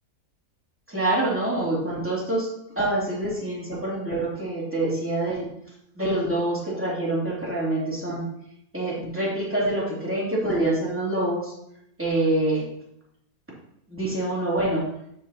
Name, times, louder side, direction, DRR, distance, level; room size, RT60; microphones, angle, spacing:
voice 1, 0.9-2.5 2.8-5.5 5.9-8.3 8.7-11.5 12.0-12.7 13.9-14.9, right 1 dB, 10° right, -6 dB, 2.8 m, -26 dB
12.5 x 5.3 x 2.8 m, 0.76 s
omnidirectional pair, 1.7 m